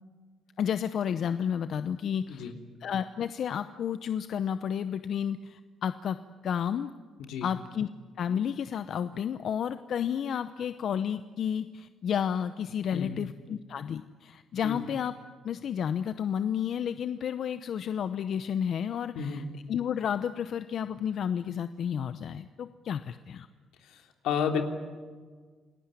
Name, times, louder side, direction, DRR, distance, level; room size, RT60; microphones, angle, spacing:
voice 1, 0.6-2.5 2.8-6.2 6.4-6.9 7.4-7.9 8.2-15.1 15.4-19.4 19.7-23.5, left 8 dB, 65° left, 11 dB, 0.8 m, -31 dB
voice 2, 19.1-19.5 23.8-24.6, left 7 dB, 90° left, 4 dB, 3.2 m, -32 dB
28.0 x 18.5 x 9.9 m, 1.5 s
cardioid pair, 90°, 0 cm